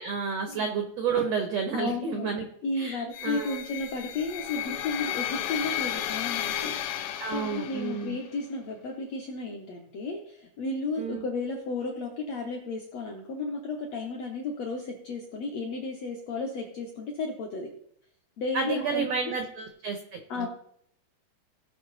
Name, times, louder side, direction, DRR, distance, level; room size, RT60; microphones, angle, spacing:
voice 1, 0.0-2.4 2.8-3.6 7.2-8.2 11.0-11.2 18.5-20.5, right 5 dB, 90° right, 5 dB, 1.4 m, -31 dB
voice 2, 1.7-2.3 2.6-6.7 7.0-17.7 18.4-19.4 20.3-20.5, left 3 dB, 75° left, 0 dB, 1.5 m, -33 dB
sound 1, 3.1-8.2, left 11 dB, 90° left, 1.8 m, -33 dB
17.5 x 5.9 x 4.1 m, 0.69 s
omnidirectional pair, 4.5 m